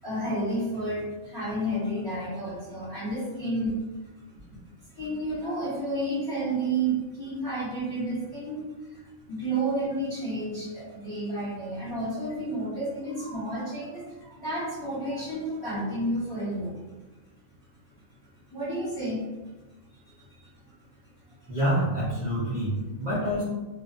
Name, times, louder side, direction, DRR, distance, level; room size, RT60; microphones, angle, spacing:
voice 1, 0.0-3.8 4.9-16.7 18.5-19.2 19.9-20.5, right 1 dB, 15° left, -11 dB, 1.2 m, -31 dB
voice 2, 21.5-23.4, right 1 dB, 45° right, -10 dB, 0.7 m, -27 dB
2.6 x 2.3 x 2.5 m, 1.1 s
omnidirectional pair, 1.5 m